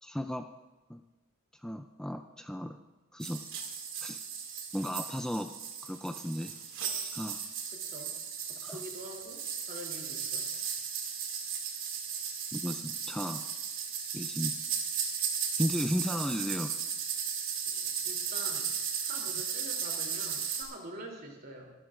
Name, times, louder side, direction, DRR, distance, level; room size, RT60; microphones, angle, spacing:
voice 1, 0.0-0.5 0.9-1.0 1.6-2.8 3.1-3.4 4.0-4.2 4.7-5.5 5.8-6.5 7.0-7.4 8.6-8.8 12.5-13.4 14.1-14.6 15.6-16.7, equal, 5° left, 6 dB, 0.4 m, -34 dB
sound 1, 3.2-20.6, right 7 dB, 75° right, 2.5 m, -36 dB
voice 2, 7.7-8.2 8.5-10.5 17.1-17.2 17.7-18.7 19.0-21.7, right 1 dB, 45° right, 0 dB, 3.2 m, -46 dB
24.0 x 12.5 x 2.5 m, 1.2 s
head